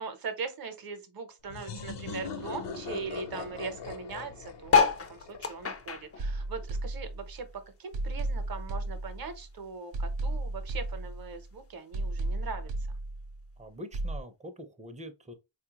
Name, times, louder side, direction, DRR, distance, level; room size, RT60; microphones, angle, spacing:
voice 1, 0.0-7.5 7.8-13.0, right 5 dB, 55° right, 0.8 m, -40 dB
sound 1, 1.5-6.1, left 5 dB, 70° left, 0.7 m, -41 dB
sound 2, 4.6-7.4 7.8-9.3 9.8-9.9 10.0-10.1 10.3-10.7 11.5-11.6, left 5 dB, 35° left, 0.4 m, -28 dB
sound 3, 6.2-7.5 7.9-9.5 9.9-11.5 11.9-13.5 13.9-14.2, right 2 dB, 90° right, 0.7 m, -34 dB
voice 2, 13.6-15.3, equal, 15° right, 0.5 m, -44 dB
4.3 x 2.4 x 2.8 m
wide cardioid pair, 140°, 44 cm